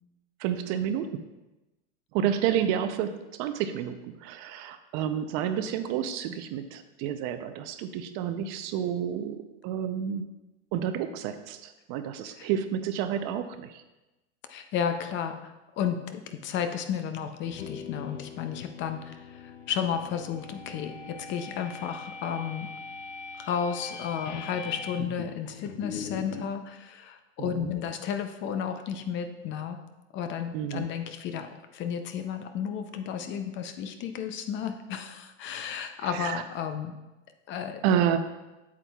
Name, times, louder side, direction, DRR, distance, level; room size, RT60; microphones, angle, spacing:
voice 1, 0.4-1.3 2.1-10.3 10.7-13.8 27.4-27.7 30.5-30.8 36.0-36.4 37.8-38.2, right 9 dB, 45° right, 9 dB, 0.6 m, -30 dB
voice 2, 14.5-22.7 23.4-29.8 30.1-37.0 37.5-37.8, left 8 dB, 35° left, 7 dB, 0.6 m, -33 dB
sound 1, 17.4-26.5, left 6 dB, 85° left, 0.7 m, -41 dB
8.2 x 7.4 x 2.3 m, 1.0 s
supercardioid pair, 120°, 35 cm